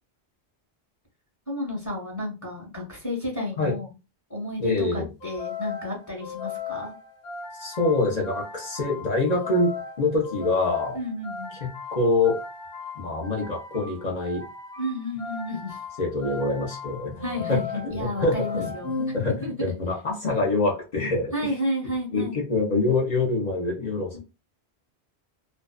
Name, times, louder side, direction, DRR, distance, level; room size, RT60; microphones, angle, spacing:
voice 1, 1.5-3.9 4.3-6.9 10.9-11.5 14.8-15.8 17.2-18.9 19.4-19.5 21.3-22.4 24.1-24.2, left 1 dB, 15° left, -2 dB, 1.1 m, -31 dB
voice 2, 4.6-5.1 7.5-11.0 11.6-12.4 13.0-14.4 16.0-18.7 19.1-21.6 22.1-24.2, left 2 dB, 45° left, -1 dB, 0.7 m, -25 dB
sound 1, 5.2-19.7, left 5 dB, 85° left, 1.1 m, -37 dB
2.5 x 2.1 x 2.3 m, 0.28 s
omnidirectional pair, 1.1 m